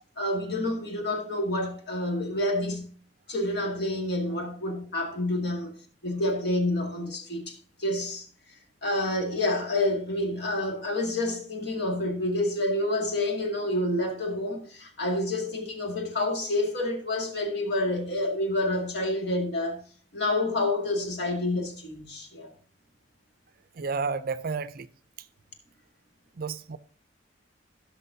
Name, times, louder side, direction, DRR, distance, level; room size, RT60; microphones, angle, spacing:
voice 1, 0.2-2.9 3.3-5.7 6.0-8.2 8.8-19.8 20.1-22.5, left 1 dB, 65° left, 2.1 m, -28 dB
voice 2, 23.8-24.9 26.4-26.8, right 4 dB, 55° right, 0.5 m, -31 dB
17.0 x 6.1 x 2.7 m
head